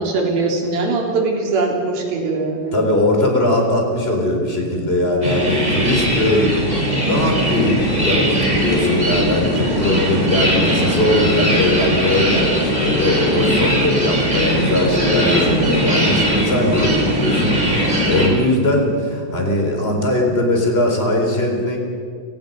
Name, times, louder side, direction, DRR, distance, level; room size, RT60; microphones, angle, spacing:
voice 1, 0.0-2.8, right 3 dB, 60° right, 1 dB, 5.2 m, -21 dB
voice 2, 2.7-21.8, left 1 dB, 15° left, 1 dB, 4.0 m, -20 dB
sound 1, 5.2-18.3, equal, 10° right, 4.6 m, -19 dB
29.5 x 18.0 x 5.4 m, 2.2 s
omnidirectional pair, 4.9 m